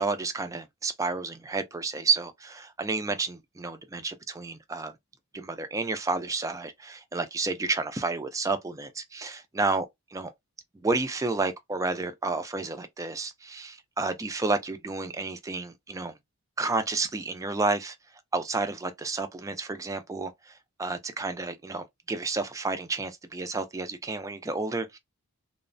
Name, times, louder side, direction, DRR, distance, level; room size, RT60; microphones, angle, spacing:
voice 1, 0.0-4.9 5.3-9.8 10.1-10.3 10.8-16.1 16.6-18.0 18.3-25.0, right 3 dB, 15° right, 0.3 m, -30 dB
3.0 x 2.0 x 2.5 m
head